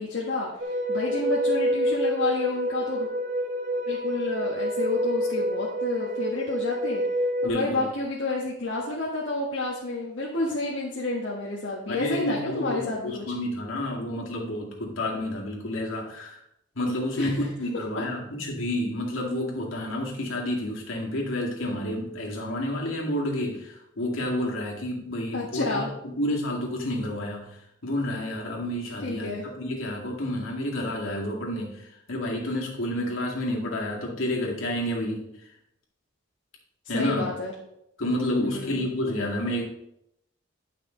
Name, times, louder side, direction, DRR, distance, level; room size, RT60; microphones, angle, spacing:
voice 1, 0.0-3.1 3.9-7.0 7.4-13.3 17.2-17.5 17.9-18.0 25.3-25.9 29.0-29.5 36.9-37.5 38.4-38.9, left 2 dB, 65° left, -5 dB, 1.4 m, -30 dB
sound 1, 0.6-7.5, equal, 45° right, 0.9 m, -27 dB
voice 2, 7.4-7.9 11.9-16.4 16.8-27.5 27.8-31.7 32.1-35.2 36.9-37.3 38.0-39.6, left 1 dB, 85° left, -2 dB, 2.3 m, -30 dB
10.5 x 5.8 x 3.9 m, 0.80 s
head